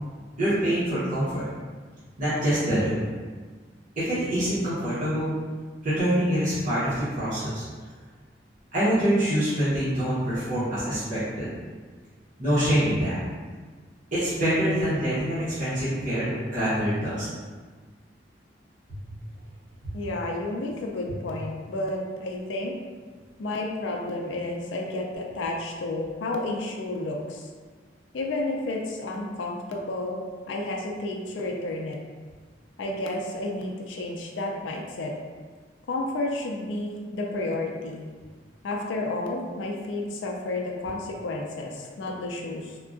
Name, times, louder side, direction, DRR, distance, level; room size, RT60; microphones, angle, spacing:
voice 1, 0.4-1.5 2.2-3.0 4.0-5.4 5.8-7.6 8.7-11.5 12.4-13.2 14.1-17.3 18.9-19.0 19.8-19.9, equal, 45° right, -12 dB, 0.9 m, -25 dB
voice 2, 19.9-22.7 23.4-27.5 28.1-32.0 32.8-35.1 35.9-38.0 38.6-42.7, left 2 dB, 85° left, 0 dB, 0.4 m, -31 dB
3.6 x 2.3 x 2.4 m, 1.5 s
head